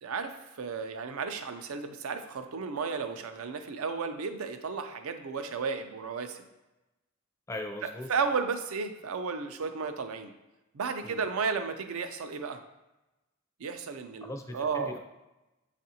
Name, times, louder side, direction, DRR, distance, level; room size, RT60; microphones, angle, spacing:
voice 1, 0.0-6.4 7.8-10.3 10.7-12.6 13.6-15.0, right 5 dB, 80° right, 8 dB, 0.5 m, -33 dB
voice 2, 7.5-8.1 11.0-11.2 14.2-15.0, left 1 dB, 15° left, 4 dB, 0.4 m, -39 dB
7.4 x 2.5 x 2.8 m, 1.0 s
head